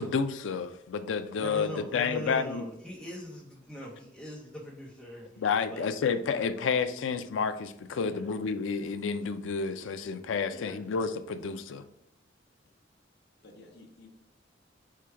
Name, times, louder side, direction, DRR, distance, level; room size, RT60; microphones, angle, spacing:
voice 1, 0.0-2.6 5.4-11.8, left 5 dB, 85° left, 11 dB, 0.4 m, -30 dB
voice 2, 1.3-5.9 7.9-8.3 10.5-10.8, equal, ahead, -6 dB, 0.7 m, -41 dB
voice 3, 13.4-14.1, left 2 dB, 60° left, 2 dB, 0.9 m, -50 dB
4.8 x 2.2 x 4.4 m, 0.82 s
head